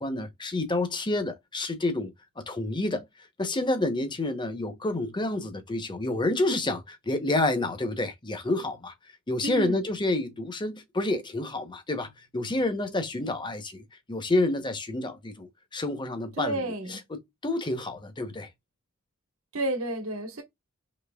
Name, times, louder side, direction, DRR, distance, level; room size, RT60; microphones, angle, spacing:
voice 1, 0.0-3.1 3.4-8.9 9.3-18.5, left 2 dB, 20° left, 0.7 m, -29 dB
voice 2, 9.4-9.8 16.4-17.0 19.5-20.4, right 2 dB, 80° right, 1.3 m, -31 dB
5.1 x 3.1 x 2.2 m
head